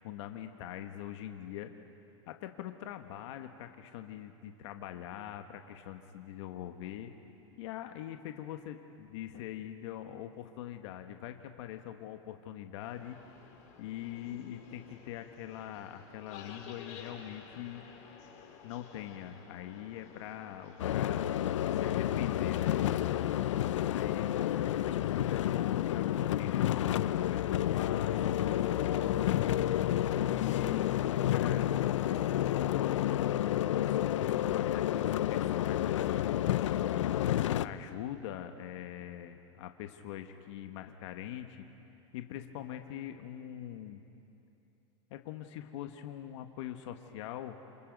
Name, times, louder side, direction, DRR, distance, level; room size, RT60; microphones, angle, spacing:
voice 1, 0.0-1.7 2.3-7.1 7.6-13.2 13.8-17.8 18.6-21.4 21.7-22.9 23.8-24.8 25.1-29.3 30.2-31.7 32.5-37.1 37.6-41.7 42.1-44.0 45.1-47.6, left 11 dB, 70° left, 6 dB, 1.5 m, -43 dB
sound 1, 12.8-27.8, left 6 dB, 50° left, 4.8 m, -54 dB
sound 2, 20.8-37.7, left 12 dB, 85° left, 0.7 m, -30 dB
29.5 x 28.0 x 5.3 m, 2.8 s
hypercardioid pair, 110°, 16 cm